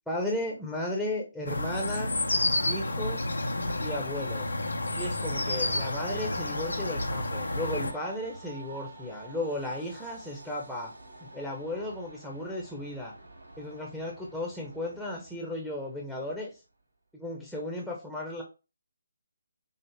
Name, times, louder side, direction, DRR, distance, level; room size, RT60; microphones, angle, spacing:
voice 1, 0.1-2.2 2.7-3.3 3.8-4.5 4.9-10.9 11.2-13.1 13.6-16.5 17.1-18.4, left 1 dB, ahead, -3 dB, 0.8 m, -35 dB
sound 1, 1.5-7.9, left 2 dB, 85° left, 0.9 m, -30 dB
Train, 3.1-16.5, right 2 dB, 85° right, 2.3 m, -48 dB
5.5 x 2.0 x 3.3 m, 0.29 s
figure-of-eight pair, 155°, 0 cm